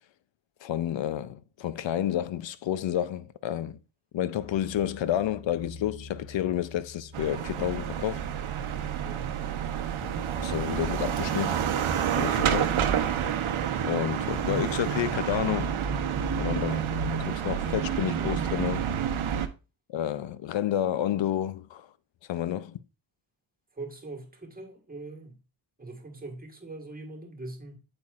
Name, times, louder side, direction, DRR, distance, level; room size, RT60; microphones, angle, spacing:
voice 1, 0.6-3.8 4.1-8.2 10.0-10.1 10.4-11.6 12.2-12.8 13.8-15.8 16.4-18.9 19.9-21.9 22.3-22.8, left 11 dB, 65° left, 0.6 m, -30 dB
sound 1, 4.3-12.8, left 3 dB, 25° left, 2.9 m, -47 dB
sound 2, 7.1-19.5, right 8 dB, 75° right, 0.9 m, -29 dB
voice 2, 9.0-9.3 23.7-25.4 25.8-27.8, right 2 dB, 20° right, 1.6 m, -42 dB
8.6 x 7.8 x 2.5 m
wide cardioid pair, 155°, 48 cm